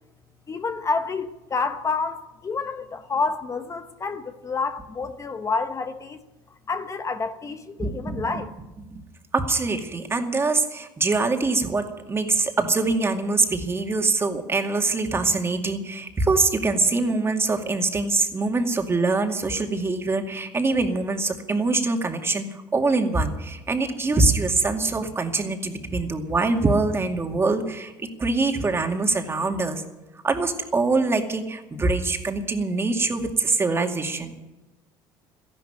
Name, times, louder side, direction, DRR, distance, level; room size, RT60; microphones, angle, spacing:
voice 1, 0.5-6.2 6.7-8.5, left 4 dB, 30° left, 1.0 m, -28 dB
voice 2, 7.8-8.4 8.9-9.0 9.3-22.5 22.7-29.8 30.2-34.3, right 3 dB, 25° right, 2.3 m, -24 dB
14.0 x 11.5 x 8.8 m
supercardioid pair, 100°, 11 cm